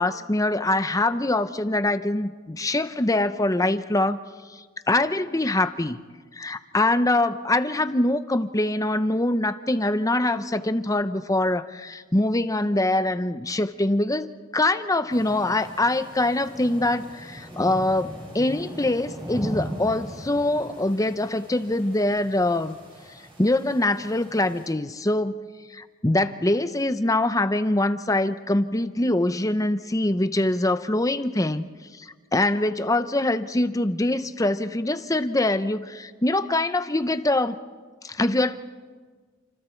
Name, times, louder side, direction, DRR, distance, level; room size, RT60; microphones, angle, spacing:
voice 1, 0.0-4.2 4.5-6.0 6.3-22.7 23.4-31.7 31.9-37.6 38.0-38.6, left 2 dB, 15° left, 11 dB, 0.8 m, -24 dB
sound 1, 15.1-24.7, equal, 25° right, 6.1 m, -39 dB
29.5 x 26.5 x 4.6 m, 1.5 s
head